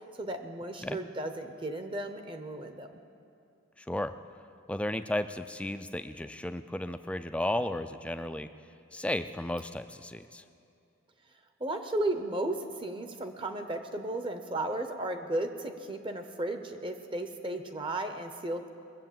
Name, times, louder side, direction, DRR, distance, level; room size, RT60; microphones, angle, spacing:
voice 1, 0.2-3.0 11.6-18.7, right 1 dB, 25° right, 7 dB, 0.7 m, -34 dB
voice 2, 3.8-4.1 4.7-8.5 8.9-10.4, left 1 dB, 5° left, 9 dB, 0.3 m, -34 dB
20.5 x 7.6 x 7.5 m, 2.6 s
head